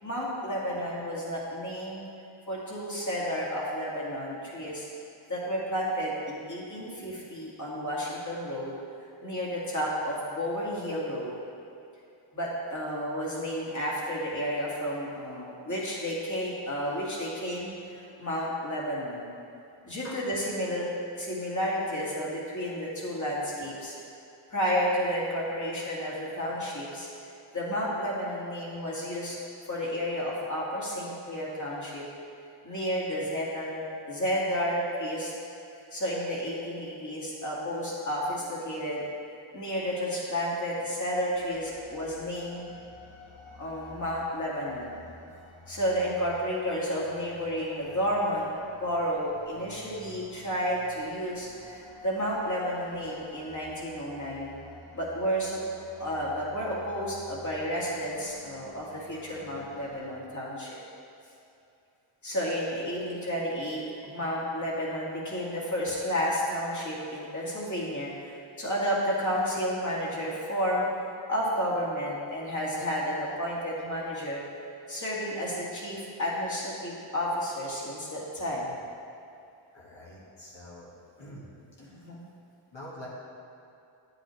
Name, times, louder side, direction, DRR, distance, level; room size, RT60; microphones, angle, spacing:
voice 1, 0.0-2.1 2.5-4.9 5.3-8.7 9.2-11.3 12.3-19.3 19.8-20.9 21.2-23.9 24.5-27.1 27.5-29.3 29.7-32.0 32.6-35.3 35.9-39.0 39.5-42.6 43.6-45.0 45.7-48.5 48.8-54.5 54.9-55.6 56.0-60.8 62.2-68.1 68.6-70.9 71.3-74.4 74.9-78.8 81.8-82.3, equal, 35° left, -6 dB, 2.0 m, -31 dB
sound 1, 41.3-60.1, left 1 dB, 85° left, 1.7 m, -51 dB
voice 2, 79.7-80.9 81.2-81.5 81.8-82.0 82.7-83.1, left 1 dB, 60° left, -6 dB, 1.8 m, -45 dB
9.8 x 7.7 x 3.2 m, 2.6 s
wide cardioid pair, 110°, 49 cm